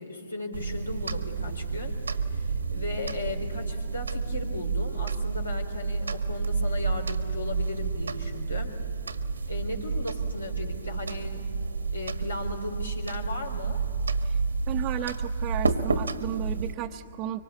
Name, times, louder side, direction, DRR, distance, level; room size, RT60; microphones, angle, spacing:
voice 1, 0.0-8.8 9.5-11.5 11.9-13.8, left 2 dB, 85° left, 3 dB, 3.9 m, -37 dB
sound 1, 0.5-16.7, right 4 dB, 80° right, 1.5 m, -30 dB
voice 2, 14.7-17.4, right 12 dB, 30° right, 1 dB, 0.8 m, -34 dB
25.0 x 24.5 x 8.5 m, 2.8 s
figure-of-eight pair, 120°, 0 cm